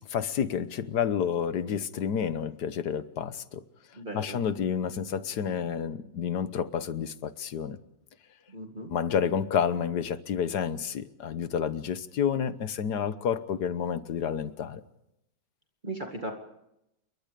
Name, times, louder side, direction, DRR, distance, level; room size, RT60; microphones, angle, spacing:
voice 1, 0.1-3.6 4.1-7.8 8.9-14.8, left 8 dB, 70° left, 1.6 m, -30 dB
voice 2, 3.9-4.4 8.5-8.9 15.8-16.3, right 1 dB, 25° right, 2.2 m, -37 dB
28.0 x 23.0 x 5.1 m
omnidirectional pair, 1.9 m